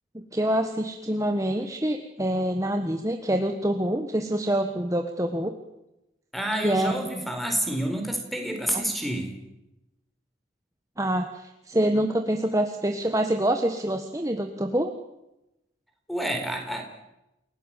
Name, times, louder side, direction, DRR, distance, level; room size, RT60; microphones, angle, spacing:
voice 1, 0.1-5.5 6.6-7.2 8.7-8.8 11.0-14.9, right 1 dB, 15° right, 6 dB, 1.5 m, -26 dB
voice 2, 6.3-9.3 16.1-16.8, right 1 dB, ahead, 5 dB, 4.6 m, -28 dB
29.0 x 17.5 x 9.2 m, 0.92 s
head